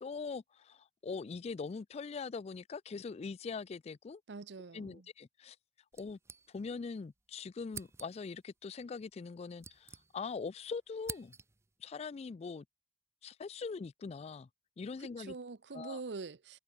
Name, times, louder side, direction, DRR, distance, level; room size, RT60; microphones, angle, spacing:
voice 1, 0.0-4.2 4.7-5.6 6.0-6.2 6.5-11.3 11.8-12.6 13.2-14.5 14.8-15.4 15.7-16.0, left 5 dB, 35° left, 0.3 m, -42 dB
voice 2, 4.3-5.1 15.0-16.6, right 4 dB, 85° right, 0.7 m, -44 dB
sound 1, 5.9-6.9 7.2-7.3 7.7-8.4 9.2-10.5 10.7-11.7, right 5 dB, 15° right, 0.5 m, -49 dB
head